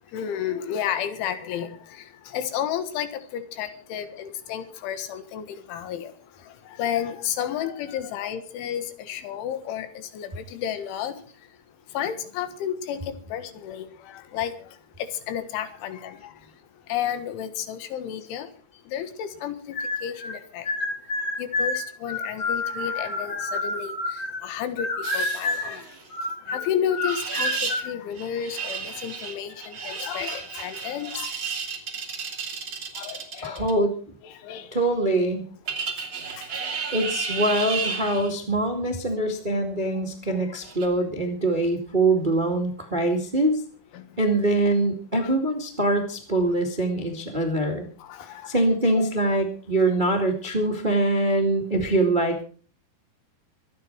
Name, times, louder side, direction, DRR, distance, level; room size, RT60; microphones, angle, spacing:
voice 1, 0.1-6.1 6.8-11.1 12.0-14.5 15.0-16.2 16.9-18.5 18.9-20.7 21.4-25.9 26.5-31.3 33.0-33.7 34.2-34.7 36.4-36.5 43.9-44.0 45.2-45.3 48.0-48.5 49.0-49.1, left 9 dB, 90° left, 10 dB, 3.9 m, -32 dB
sound 1, 19.7-20.4 20.7-24.5 24.8-25.8 26.1-27.9, left 2 dB, 35° left, 3.8 m, -29 dB
sound 2, 25.0-26.1 27.0-27.8 28.2-33.7 35.7-38.3 40.6-40.9, right 5 dB, 35° right, 2.5 m, -32 dB
voice 2, 33.4-34.0 34.7-35.4 36.9-43.6 44.2-47.9 48.5-52.4, right 2 dB, 70° right, 3 dB, 0.4 m, -23 dB
24.0 x 9.3 x 4.6 m, 0.41 s
omnidirectional pair, 5.3 m